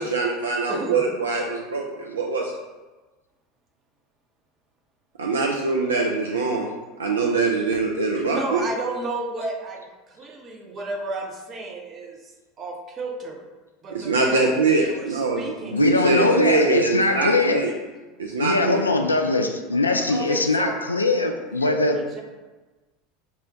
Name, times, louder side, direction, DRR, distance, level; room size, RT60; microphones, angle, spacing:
voice 1, 0.0-2.5 5.2-6.7 7.0-8.6 13.9-17.7 18.2-18.8, right 3 dB, 80° right, 0 dB, 0.3 m, -23 dB
voice 2, 0.7-1.0 8.1-12.3 12.6-13.5 13.8-14.5 14.8-15.8 19.7-20.8 21.6-22.2, right 3 dB, 35° right, 2 dB, 0.7 m, -33 dB
voice 3, 15.7-17.6 18.4-22.0, left 2 dB, 90° left, 5 dB, 0.3 m, -21 dB
5.4 x 2.1 x 2.6 m, 1.2 s
figure-of-eight pair, 80°, 0 cm